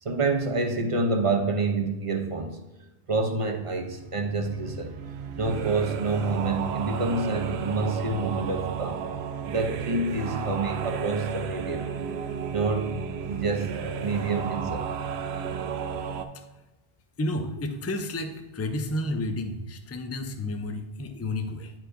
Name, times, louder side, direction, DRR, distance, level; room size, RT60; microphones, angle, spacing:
voice 1, 0.0-2.6 3.1-5.0 5.4-9.0 9.4-11.9 12.5-13.0 13.3-13.7 14.0-14.9, right 3 dB, 35° right, 4 dB, 0.6 m, -27 dB
sound 1, 3.9-16.3, right 6 dB, 85° right, 0.8 m, -33 dB
voice 2, 17.2-21.7, left 1 dB, 25° left, 7 dB, 0.3 m, -31 dB
9.7 x 4.7 x 2.6 m, 1.1 s
omnidirectional pair, 1.1 m